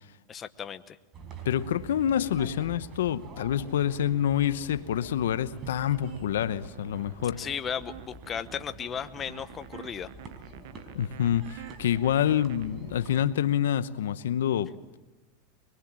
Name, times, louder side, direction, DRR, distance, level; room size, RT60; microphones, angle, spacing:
voice 1, 0.3-1.0 7.4-10.1, left 7 dB, 25° left, 1.0 m, -35 dB
sound 1, 1.1-13.3, right 3 dB, 35° right, 4.5 m, -46 dB
voice 2, 1.4-7.4 10.9-15.0, left 10 dB, 85° left, 0.8 m, -27 dB
sound 2, 5.9-12.7, right 14 dB, 70° right, 0.7 m, -48 dB
24.5 x 22.0 x 7.5 m
supercardioid pair, 115°, 0 cm